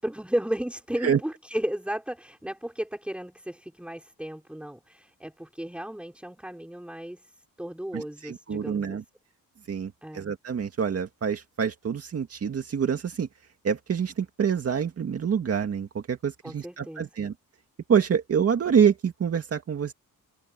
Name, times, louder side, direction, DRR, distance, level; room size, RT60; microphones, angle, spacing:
voice 1, 0.0-7.3 7.6-9.0 10.0-10.3 16.4-17.1, right 1 dB, 5° right, 5.0 m, -34 dB
voice 2, 7.9-9.0 9.7-13.3 13.6-17.3 17.9-19.9, right 7 dB, 45° right, 2.1 m, -26 dB
open air
wide cardioid pair, 170°, 34 cm